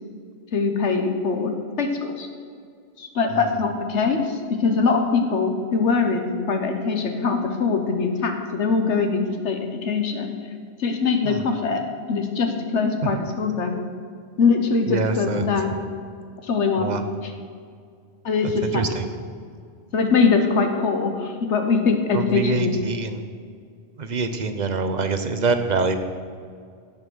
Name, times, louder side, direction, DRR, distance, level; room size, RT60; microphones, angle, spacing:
voice 1, 0.5-1.5 1.8-2.3 3.0-10.3 10.8-11.8 12.1-13.8 14.4-15.7 16.4-16.9 18.2-18.8 19.9-22.7, left 4 dB, 85° left, 5 dB, 1.4 m, -22 dB
voice 2, 14.9-15.5 16.8-17.0 18.4-19.1 22.1-23.2 24.0-26.0, right 4 dB, 45° right, 8 dB, 0.9 m, -25 dB
16.0 x 5.5 x 6.3 m, 2.2 s
omnidirectional pair, 1.2 m